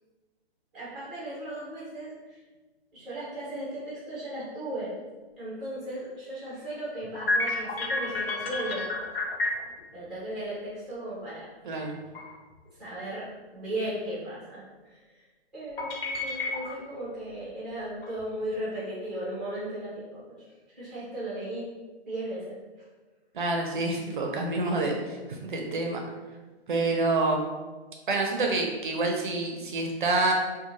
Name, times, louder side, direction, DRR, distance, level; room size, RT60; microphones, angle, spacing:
voice 1, 0.7-2.4 2.9-4.9 5.4-8.9 9.9-11.5 12.8-15.2 15.5-21.7 22.1-22.9, right 1 dB, ahead, -8 dB, 0.5 m, -36 dB
sound 1, 7.0-9.8 11.8-11.9 12.1-12.6 15.8-16.9 17.3-17.4 18.0-18.5, left 2 dB, 60° left, 0.6 m, -30 dB
voice 2, 23.3-26.0 26.7-27.4 28.1-30.3, right 2 dB, 50° right, 1 dB, 0.5 m, -27 dB
2.6 x 2.1 x 3.0 m, 1.3 s
figure-of-eight pair, 135°, 32 cm